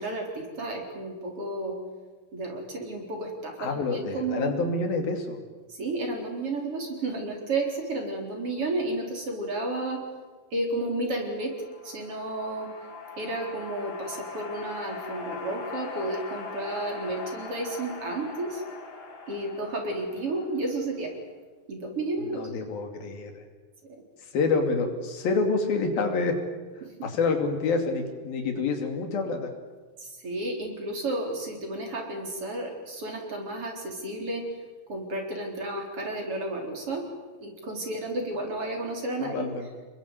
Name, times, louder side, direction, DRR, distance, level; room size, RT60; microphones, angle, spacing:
voice 1, 0.0-1.8 2.3-4.7 5.7-10.0 10.5-11.5 11.8-12.7 13.2-18.6 19.3-21.1 21.7-22.5 23.8-24.0 26.8-26.9 30.0-34.5 34.9-37.1 37.4-39.5, right 2 dB, 40° right, 1 dB, 4.9 m, -32 dB
voice 2, 3.6-5.4 22.2-23.3 24.3-26.4 27.0-29.5 39.2-39.6, left 4 dB, 80° left, 5 dB, 4.6 m, -27 dB
sound 1, 11.4-20.9, left 4 dB, 60° left, 5.0 m, -41 dB
27.5 x 22.0 x 8.3 m, 1.3 s
omnidirectional pair, 4.1 m